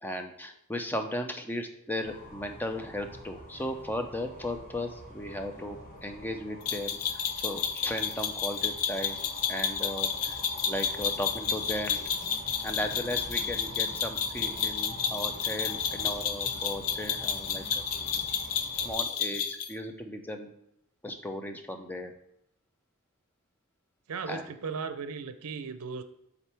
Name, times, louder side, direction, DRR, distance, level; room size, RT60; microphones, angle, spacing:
voice 1, 0.0-5.8 6.0-9.2 9.5-10.4 10.7-12.0 12.6-17.8 18.8-19.4 19.7-20.5 21.0-22.1 24.3-24.4, left 1 dB, 10° left, 5 dB, 0.5 m, -36 dB
sound 1, 2.0-18.9, equal, 35° left, 1.4 m, -46 dB
sound 2, 6.7-19.7, left 7 dB, 75° left, 0.6 m, -31 dB
voice 2, 24.1-26.0, right 5 dB, 85° right, 11 dB, 0.5 m, -36 dB
7.3 x 4.0 x 3.4 m, 0.77 s
head